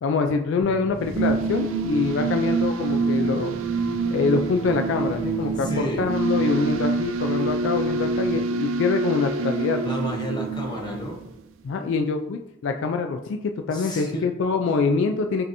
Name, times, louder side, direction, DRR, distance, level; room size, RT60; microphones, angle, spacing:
voice 1, 0.0-3.6 4.1-9.8 11.6-15.5, left 4 dB, 65° left, 5 dB, 0.3 m, -25 dB
sound 1, 0.6-8.4, right 1 dB, 25° right, 0.8 m, -38 dB
sound 2, 1.0-11.4, right 4 dB, 80° right, 0.4 m, -26 dB
voice 2, 5.6-6.1 9.8-11.2 13.7-14.3, equal, 20° left, 0 dB, 0.8 m, -31 dB
5.1 x 2.9 x 2.6 m, 0.84 s
head